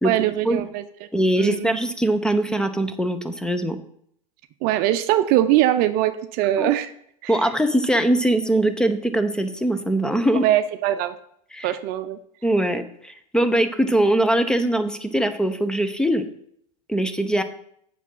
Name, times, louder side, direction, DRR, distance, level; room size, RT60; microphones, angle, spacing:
voice 1, 0.0-0.8 1.4-1.8 4.6-6.9 7.2-7.3 10.4-11.2 11.6-12.2, right 13 dB, 45° right, 11 dB, 0.7 m, -21 dB
voice 2, 1.1-3.8 6.6-6.7 7.3-10.4 11.5-11.7 12.4-16.2 16.9-17.4, right 1 dB, 5° left, 9 dB, 0.9 m, -21 dB
8.3 x 6.1 x 5.6 m, 0.68 s
hypercardioid pair, 100°, 21 cm